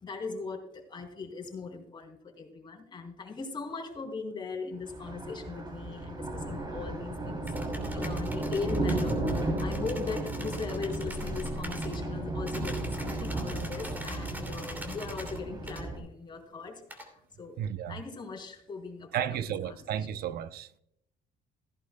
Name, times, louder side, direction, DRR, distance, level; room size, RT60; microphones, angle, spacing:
voice 1, 0.0-7.5 7.9-19.8, left 4 dB, 25° left, 3.2 m, -39 dB
Thunder, 4.8-16.0, right 2 dB, 25° right, 3.1 m, -34 dB
sound 1, 7.5-12.0 12.5-15.4 15.7-15.8 16.9-17.1, equal, 10° right, 2.6 m, -44 dB
voice 2, 17.6-18.0 19.1-20.8, right 10 dB, 65° right, 0.7 m, -33 dB
15.0 x 11.0 x 2.2 m
cardioid pair, 110°, 17 cm